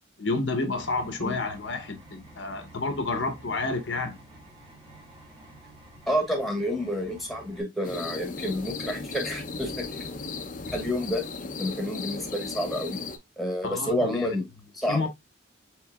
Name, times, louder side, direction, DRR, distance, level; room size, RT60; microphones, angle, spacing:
voice 1, 0.2-4.2 13.6-14.3 14.9-15.1, left 3 dB, 65° left, 0.8 m, -30 dB
sound 1, 0.8-7.6, right 1 dB, 25° right, 1.6 m, -50 dB
voice 2, 6.1-10.0 10.7-11.2 11.6-13.0 13.4-14.5 14.7-15.1, equal, ahead, 1.1 m, -29 dB
sound 2, 7.8-13.2, left 4 dB, 40° left, 0.5 m, -36 dB
4.6 x 3.9 x 2.2 m
head